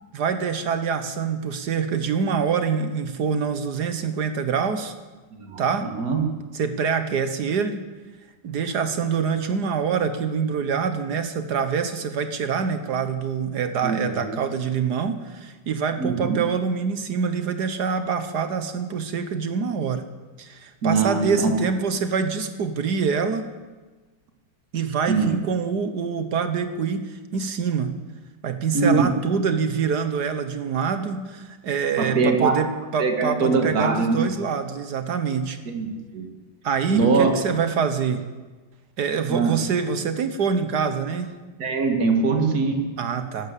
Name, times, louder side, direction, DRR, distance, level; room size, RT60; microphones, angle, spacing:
voice 1, 0.1-4.9 5.6-5.9 6.5-7.8 8.4-20.1 20.4-23.5 24.7-28.0 28.4-35.6 36.6-38.3 39.0-41.3 43.0-43.5, right 6 dB, 60° right, 9 dB, 1.2 m, -25 dB
voice 2, 5.4-6.2 13.8-14.4 16.0-16.4 20.8-21.5 25.1-25.3 28.7-29.1 32.0-32.6 33.0-34.3 35.7-36.3 36.9-37.3 39.3-39.5 41.6-42.8, right 4 dB, 45° right, 3 dB, 2.3 m, -22 dB
12.5 x 12.0 x 8.3 m, 1.3 s
omnidirectional pair, 2.4 m